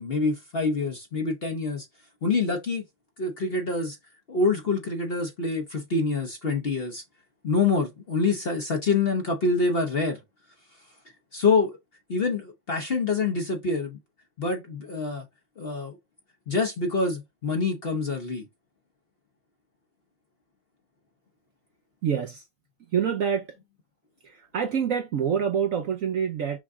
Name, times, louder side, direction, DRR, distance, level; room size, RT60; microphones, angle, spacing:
voice 1, 0.0-1.9 2.2-2.8 3.2-4.0 4.3-7.0 7.4-10.2 11.3-11.8 12.1-14.0 14.4-15.3 15.6-16.0 16.5-18.5, left 4 dB, 45° left, 0.9 m, -26 dB
voice 2, 22.0-22.4 22.9-23.5 24.2-26.6, right 7 dB, 65° right, 0.8 m, -26 dB
6.2 x 2.3 x 3.6 m
omnidirectional pair, 2.0 m